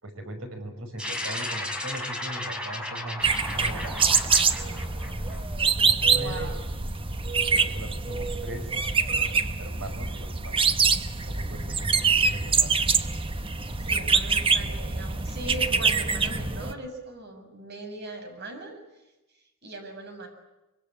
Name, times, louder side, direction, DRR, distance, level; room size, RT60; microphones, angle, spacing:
voice 1, 0.0-4.0 5.8-6.5 7.5-10.6 11.1-12.8 14.0-14.3, right 1 dB, 65° right, 5 dB, 6.1 m, -39 dB
sound 1, 1.0-5.7, left 1 dB, 5° right, 5.1 m, -35 dB
sound 2, 3.2-16.7, right 5 dB, 25° right, 1.1 m, -25 dB
voice 2, 6.1-6.6 13.7-18.7 19.6-20.3, right 1 dB, 50° right, 4 dB, 7.3 m, -39 dB
25.0 x 24.5 x 8.7 m, 1.0 s
head